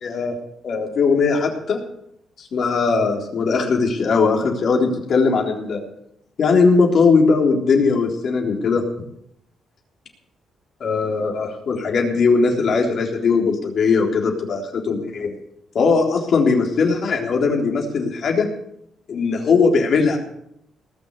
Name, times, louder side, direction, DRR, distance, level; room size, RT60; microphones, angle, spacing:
voice 1, 0.0-0.4 0.6-1.8 2.4-5.8 6.4-8.8 10.8-15.3 15.7-18.5 19.1-20.2, left 4 dB, 55° left, 1 dB, 3.7 m, -19 dB
19.5 x 6.4 x 8.5 m, 0.76 s
cardioid pair, 90°, 0 cm